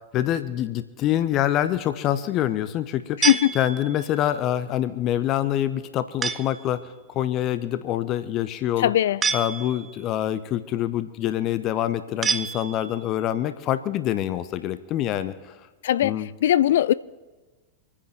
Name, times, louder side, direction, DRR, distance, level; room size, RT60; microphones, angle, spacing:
voice 1, 0.1-3.3 3.5-8.9 9.3-15.3 16.0-16.3, left 12 dB, 35° left, 0.8 m, -25 dB
voice 2, 3.2-3.5 8.8-9.2 15.8-16.9, left 12 dB, 60° left, 0.4 m, -20 dB
sound 1, 3.2-4.2 6.2-6.7 9.2-10.1 12.2-13.1, right 6 dB, 20° right, 0.7 m, -28 dB
27.0 x 9.9 x 3.5 m
figure-of-eight pair, 90°, 0 cm